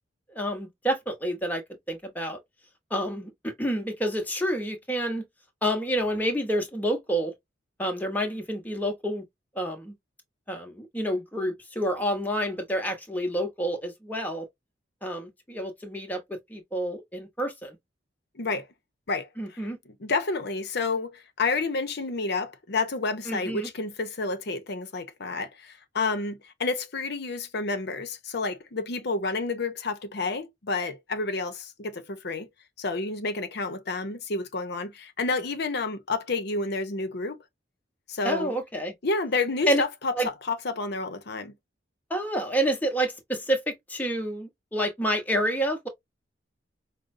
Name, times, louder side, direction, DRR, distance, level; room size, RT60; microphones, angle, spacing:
voice 1, 0.3-2.4 2.9-5.2 5.6-7.3 7.8-9.2 9.5-9.9 10.5-14.5 15.0-17.8 19.4-19.8 23.3-23.7 38.2-38.9 39.7-39.8 40.1-40.3 42.1-45.9, equal, 10° left, 1.0 m, -29 dB
voice 2, 18.4-18.7 19.1-19.6 20.0-32.5 32.8-37.4 38.1-38.5 39.0-41.5, left 3 dB, 60° left, 0.8 m, -30 dB
5.1 x 2.2 x 2.6 m
head